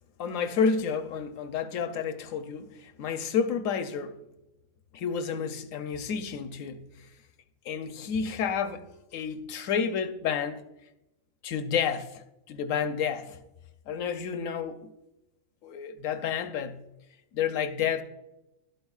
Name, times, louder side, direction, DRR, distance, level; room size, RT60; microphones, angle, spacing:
voice 1, 0.2-4.2 4.9-7.1 7.6-10.6 11.4-13.4 13.9-14.9 15.6-16.8 17.3-18.0, left 6 dB, 70° left, 1.0 m, -30 dB
11.5 x 8.0 x 2.4 m
omnidirectional pair, 1.5 m